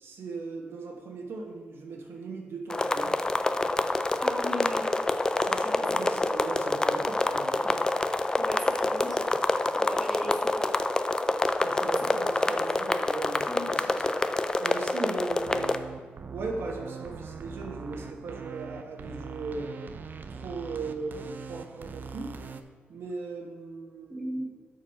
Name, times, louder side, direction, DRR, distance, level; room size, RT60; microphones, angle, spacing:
voice 1, 0.0-3.1 5.4-7.9 11.6-14.2 14.6-15.8 16.3-19.8 20.3-22.4 22.9-24.5, right 3 dB, 85° right, 1 dB, 1.3 m, -38 dB
sound 1, 2.7-15.8, left 2 dB, 20° left, 0.4 m, -27 dB
voice 2, 4.2-4.9 5.6-6.0 8.4-9.3 9.7-11.0 12.0-12.7 13.5-13.8 24.1-24.5, equal, ahead, -3 dB, 1.8 m, -37 dB
sound 2, 15.3-22.6, right 5 dB, 55° right, 0.5 m, -42 dB
7.4 x 5.4 x 5.4 m, 1.5 s
wide cardioid pair, 140°, 4 cm